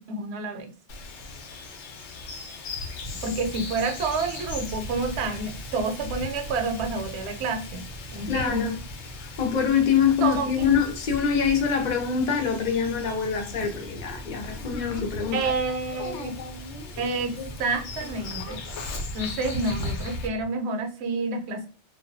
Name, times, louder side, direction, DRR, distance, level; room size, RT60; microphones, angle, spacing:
voice 1, 0.1-0.7 3.2-7.8 8.1-8.7 10.2-10.7 15.3-16.3 17.0-18.6 19.1-21.7, right 3 dB, 70° right, 0.8 m, -29 dB
Bird vocalization bird call bird song, 0.9-20.3, left 2 dB, 85° left, 0.9 m, -38 dB
sound 1, 3.1-20.5, equal, 10° right, 0.5 m, -44 dB
voice 2, 8.3-8.8 9.2-15.4, left 7 dB, 50° left, 0.6 m, -25 dB
2.3 x 2.2 x 2.5 m
omnidirectional pair, 1.2 m